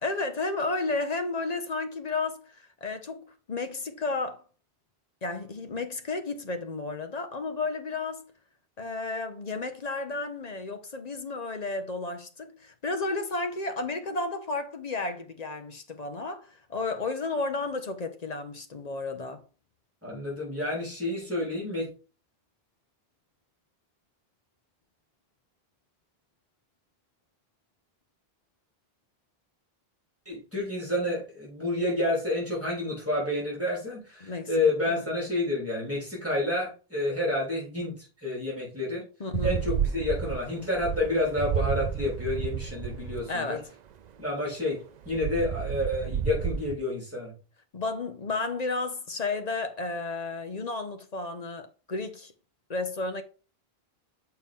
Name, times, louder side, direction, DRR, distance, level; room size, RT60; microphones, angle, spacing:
voice 1, 0.0-4.4 5.2-8.3 8.8-19.4 34.2-34.5 34.8-35.1 39.2-39.6 43.3-43.7 47.7-52.3 52.7-53.2, left 3 dB, 45° left, 0.8 m, -32 dB
voice 2, 20.0-21.9 30.3-38.0 38.2-39.0 39.4-43.6 44.2-47.3, left 2 dB, 15° right, 3.5 m, -29 dB
sound 1, 39.3-43.2 45.0-46.7, right 8 dB, 55° right, 0.5 m, -31 dB
7.0 x 4.5 x 3.6 m
omnidirectional pair, 1.0 m